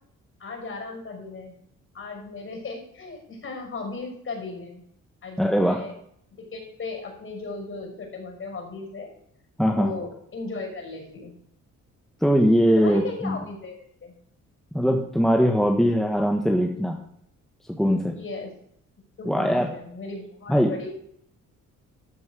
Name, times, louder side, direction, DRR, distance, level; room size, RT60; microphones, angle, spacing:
voice 1, 0.4-1.5 1.9-4.8 5.2-5.9 6.5-9.1 9.6-11.3 12.8-14.1 18.1-18.5 19.2-20.9, left 3 dB, 45° left, 2 dB, 5.7 m, -36 dB
voice 2, 5.4-5.8 9.6-9.9 12.2-13.4 14.7-17.0 17.8-18.1 19.2-19.7 20.5-20.7, equal, ahead, 1 dB, 1.6 m, -21 dB
13.5 x 6.1 x 6.4 m, 0.68 s
cardioid pair, 90°, 30 cm